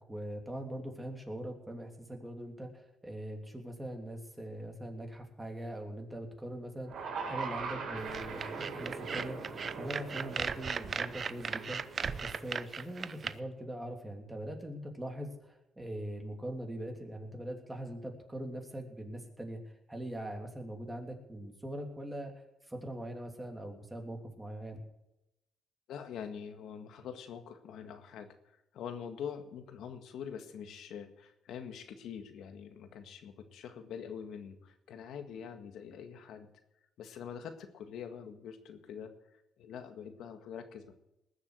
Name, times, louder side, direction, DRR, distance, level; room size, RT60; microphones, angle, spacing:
voice 1, 0.0-19.6 19.9-22.3 22.7-24.8, right 1 dB, 10° right, 2 dB, 3.1 m, -42 dB
sound 1, 6.8-13.1, right 4 dB, 70° right, 4.1 m, -42 dB
sound 2, 8.1-13.3, right 6 dB, 45° right, 0.6 m, -37 dB
voice 2, 25.9-36.5 37.0-39.1 39.6-40.9, left 7 dB, 80° left, 8 dB, 1.7 m, -44 dB
20.0 x 7.4 x 6.3 m, 0.88 s
cardioid pair, 90°, 0 cm